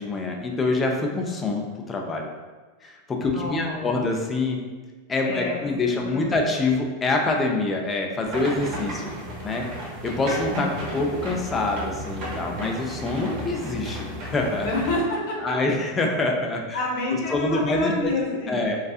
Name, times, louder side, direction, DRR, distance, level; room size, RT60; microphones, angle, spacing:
voice 1, 0.0-2.3 2.8-4.6 5.1-9.1 9.4-9.7 10.0-10.7 10.9-14.7 15.4-16.8 17.3-18.1 18.5-18.8, left 3 dB, 15° left, 1 dB, 0.3 m, -25 dB
voice 2, 3.1-4.1 5.2-5.6 5.9-6.4 10.5-11.0 14.6-15.4 16.7-18.7, left 2 dB, 70° left, -3 dB, 0.8 m, -28 dB
sound 1, 8.2-15.0, right 1 dB, 45° right, 0.7 m, -33 dB
2.6 x 2.3 x 2.3 m, 1.3 s
supercardioid pair, 150°, 0 cm